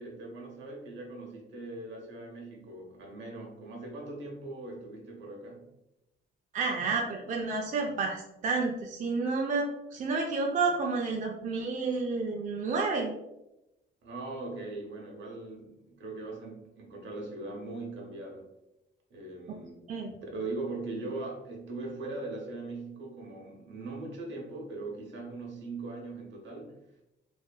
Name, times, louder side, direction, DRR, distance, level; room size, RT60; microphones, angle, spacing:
voice 1, 0.0-5.7 14.0-18.5 19.1-19.8 20.3-26.8, right 2 dB, 65° right, 0 dB, 0.8 m, -40 dB
voice 2, 6.5-13.1 19.9-20.1, right 4 dB, 40° right, -1 dB, 0.4 m, -30 dB
2.6 x 2.3 x 2.2 m, 0.91 s
cardioid pair, 90°, 20 cm